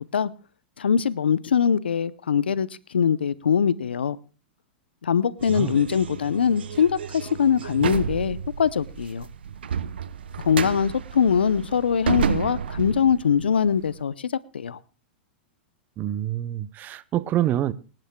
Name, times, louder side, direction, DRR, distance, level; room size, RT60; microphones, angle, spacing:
voice 1, 0.8-4.2 5.0-9.3 10.4-14.8, left 7 dB, 85° left, 0.6 m, -22 dB
sound 1, 5.4-14.0, right 7 dB, 80° right, 0.9 m, -31 dB
voice 2, 16.0-17.7, right 12 dB, 35° right, 0.7 m, -26 dB
25.0 x 10.5 x 2.2 m
hypercardioid pair, 110°, 6 cm